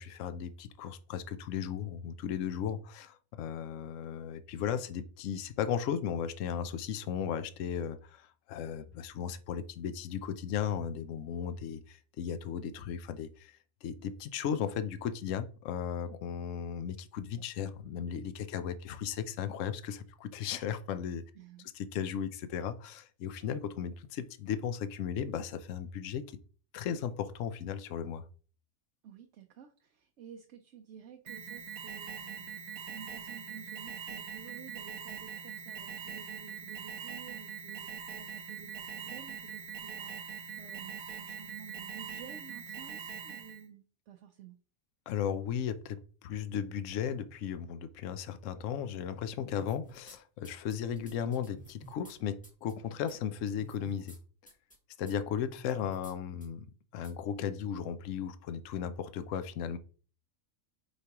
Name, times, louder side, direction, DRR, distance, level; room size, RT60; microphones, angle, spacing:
voice 1, 0.0-21.2 21.7-26.2 26.7-28.2 45.1-54.2 55.0-56.7 56.9-59.8, left 8 dB, 70° left, 11 dB, 1.0 m, -36 dB
voice 2, 21.3-21.7 29.0-44.6, right 8 dB, 65° right, 5 dB, 0.9 m, -52 dB
Alarm, 31.3-43.7, right 7 dB, 85° right, 1.3 m, -42 dB
sound 1, 49.6-50.2 50.4-52.1 52.4-52.7 53.1-53.2 53.5-54.2 54.5-54.8 55.1-55.2 55.6-56.1 56.4-56.5 57.0-57.1, right 2 dB, 5° left, 0.9 m, -53 dB
8.2 x 4.8 x 2.9 m, 0.41 s
omnidirectional pair, 1.4 m